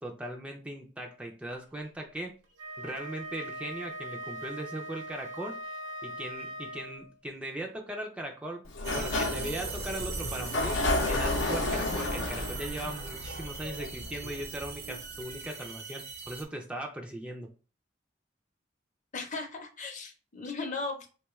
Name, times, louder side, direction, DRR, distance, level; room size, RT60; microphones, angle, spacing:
voice 1, 0.0-2.3 2.8-5.6 6.0-8.6 8.9-17.5, right 1 dB, 5° right, 0 dB, 0.3 m, -39 dB
Wind instrument woodwind instrument, 2.5-7.1, right 1 dB, 85° right, 0.9 m, -41 dB
Sliding door, 8.7-14.3, left 2 dB, 85° left, 0.6 m, -32 dB
sound 1, 8.8-16.4, right 4 dB, 55° right, 0.6 m, -39 dB
voice 2, 19.1-21.1, left 3 dB, 40° left, 4 dB, 0.6 m, -37 dB
3.4 x 2.3 x 3.0 m, 0.35 s
head